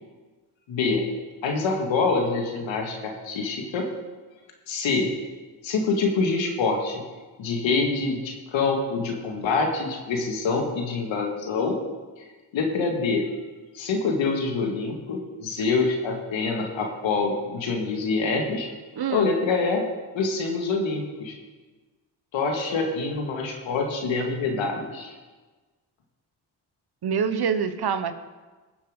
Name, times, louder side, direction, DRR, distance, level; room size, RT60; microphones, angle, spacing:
voice 1, 0.7-1.1 1.4-3.9 4.7-5.1 5.6-7.0 7.4-11.8 12.2-12.3 12.5-13.3 13.7-18.7 19.1-19.8 20.1-21.4 22.3-25.1, left 4 dB, 85° left, 2 dB, 1.9 m, -25 dB
voice 2, 19.0-19.3 27.0-28.1, right 6 dB, 55° right, 10 dB, 1.1 m, -25 dB
19.0 x 7.2 x 3.7 m, 1.3 s
supercardioid pair, 50°, 45 cm